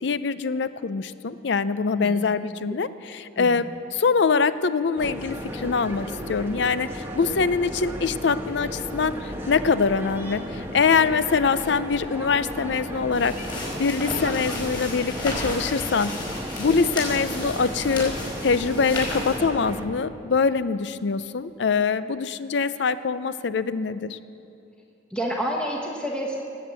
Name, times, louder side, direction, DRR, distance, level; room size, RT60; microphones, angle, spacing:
voice 1, 0.0-13.3 13.8-16.2 16.6-18.1 18.4-24.2, left 5 dB, 65° left, 14 dB, 0.5 m, -24 dB
voice 2, 1.9-2.3 3.3-3.6 25.1-26.4, equal, 5° left, -2 dB, 1.2 m, -29 dB
sound 1, 5.0-19.9, equal, 15° right, 1.2 m, -34 dB
sound 2, 13.1-19.4, left 2 dB, 25° left, 4.7 m, -33 dB
18.5 x 8.0 x 8.2 m, 2.6 s
head